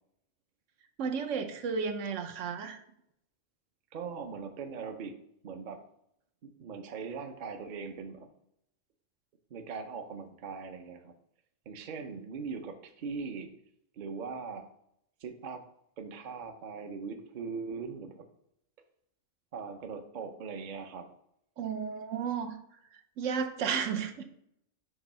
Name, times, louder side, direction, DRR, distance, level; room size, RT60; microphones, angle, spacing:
voice 1, 1.0-2.8 21.6-22.6 23.2-24.2, right 6 dB, 80° right, 6 dB, 1.0 m, -33 dB
voice 2, 3.9-5.2 5.4-5.8 6.4-8.3 9.5-11.1 11.7-13.5 13.9-14.7 15.2-15.6 16.0-18.3 19.5-21.1, right 5 dB, 50° right, 6 dB, 0.7 m, -40 dB
6.0 x 2.9 x 5.4 m, 0.74 s
omnidirectional pair, 1.3 m